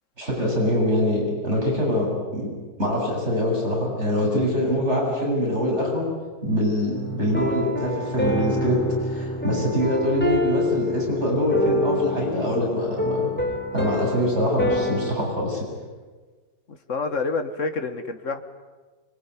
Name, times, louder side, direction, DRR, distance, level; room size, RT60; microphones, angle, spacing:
voice 1, 0.2-2.5 2.8-6.0 6.4-13.3 13.7-15.6, left 1 dB, 35° right, -2 dB, 8.5 m, -24 dB
sound 1, 6.9-15.2, equal, 5° left, 4.3 m, -27 dB
voice 2, 16.7-18.4, left 3 dB, 45° left, 8 dB, 2.0 m, -28 dB
25.0 x 23.5 x 9.9 m, 1.4 s
omnidirectional pair, 2.0 m